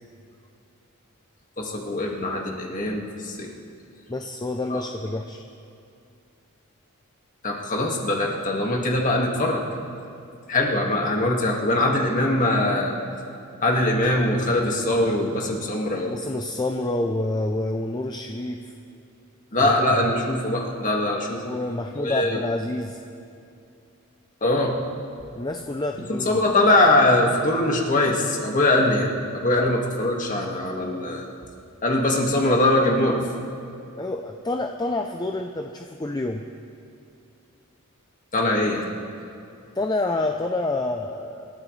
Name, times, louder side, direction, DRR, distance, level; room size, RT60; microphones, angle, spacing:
voice 1, 1.6-3.5 4.7-4.8 7.4-9.6 10.5-12.9 13.6-16.2 19.5-21.4 22.0-22.4 24.4-24.7 26.1-29.1 29.3-31.2 31.8-33.2 38.3-38.9, left 1 dB, 35° left, -1 dB, 2.0 m, -22 dB
voice 2, 4.1-5.4 16.0-18.6 19.6-19.7 21.4-23.0 25.3-26.4 29.6-29.7 34.0-36.4 39.8-41.5, left 2 dB, 20° left, 4 dB, 0.5 m, -28 dB
27.5 x 13.0 x 3.3 m, 2.6 s
head